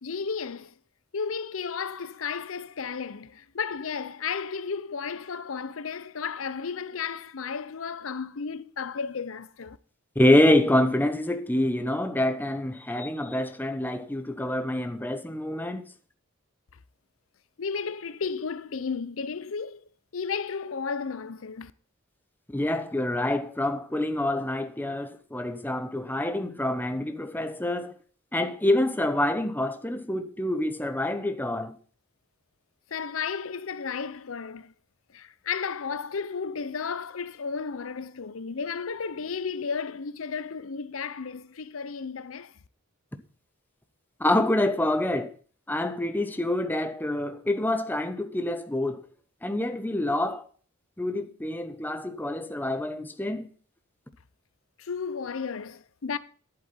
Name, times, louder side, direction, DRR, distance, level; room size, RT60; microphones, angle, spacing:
voice 1, 0.0-0.7 1.1-9.8 17.6-21.7 32.9-34.7 35.1-42.5 54.8-56.2, left 5 dB, 80° left, 0.7 m, -33 dB
voice 2, 10.2-15.9 22.5-28.0 28.3-31.7 44.2-45.3 45.7-49.0 49.4-50.5 51.0-53.5, left 1 dB, 10° left, 1.0 m, -26 dB
11.0 x 8.0 x 5.7 m
head